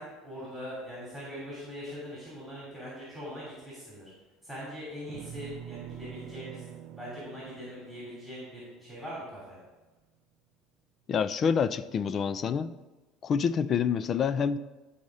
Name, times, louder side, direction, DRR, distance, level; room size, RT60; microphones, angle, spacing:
voice 1, 0.0-4.1 4.4-9.6, equal, 5° left, -8 dB, 3.0 m, -42 dB
sound 1, 5.1-9.5, right 9 dB, 50° right, 0.5 m, -46 dB
voice 2, 11.1-12.8 13.2-14.6, left 6 dB, 35° left, 16 dB, 0.3 m, -27 dB
12.0 x 4.2 x 4.8 m, 1.2 s
cardioid pair, 130°, 0 cm